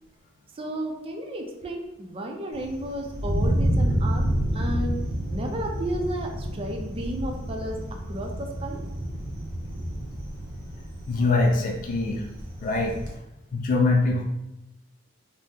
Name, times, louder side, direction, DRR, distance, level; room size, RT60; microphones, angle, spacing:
voice 1, 0.5-4.3 4.5-5.0 5.3-7.8 8.1-8.8, right 1 dB, 30° right, 2 dB, 0.4 m, -33 dB
Thunder, 2.5-13.1, right 1 dB, 80° right, 0.8 m, -29 dB
voice 2, 11.1-12.3 12.6-13.0 13.5-14.2, left 3 dB, 40° left, 0 dB, 0.3 m, -23 dB
2.7 x 2.1 x 3.6 m, 0.93 s
head